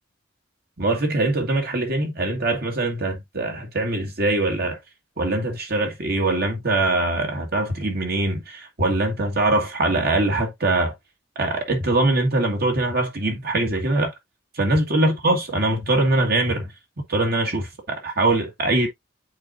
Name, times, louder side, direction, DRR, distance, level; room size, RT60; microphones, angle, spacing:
voice 1, 0.8-4.8 5.2-10.9 11.4-14.1 14.6-16.7 17.1-18.9, right 2 dB, 55° right, 1.9 m, -22 dB
8.6 x 4.2 x 2.6 m
head